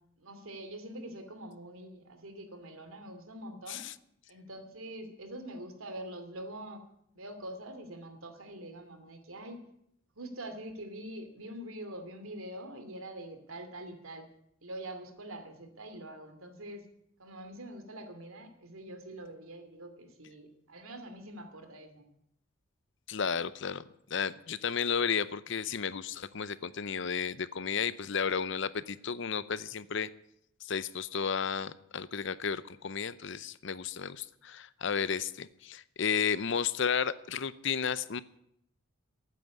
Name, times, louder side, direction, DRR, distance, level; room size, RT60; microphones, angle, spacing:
voice 1, 0.2-3.8 4.3-6.8 7.1-9.6 10.2-14.3 14.6-16.8 17.2-22.1, right 1 dB, 80° right, 7 dB, 2.6 m, -44 dB
voice 2, 23.1-23.8 24.1-30.1 30.6-38.2, left 6 dB, 60° left, 16 dB, 0.7 m, -33 dB
13.5 x 9.3 x 9.7 m, 0.74 s
head